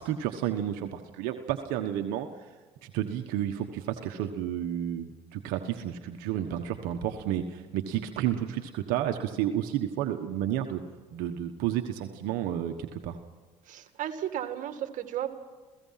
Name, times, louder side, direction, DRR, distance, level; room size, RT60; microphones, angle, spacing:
voice 1, 0.0-2.5 2.8-10.8 11.1-13.2, right 11 dB, 75° right, 6 dB, 1.3 m, -31 dB
voice 2, 13.6-15.3, right 11 dB, 60° right, 8 dB, 2.1 m, -34 dB
28.0 x 17.0 x 5.8 m, 1.3 s
supercardioid pair, 80°, 15 cm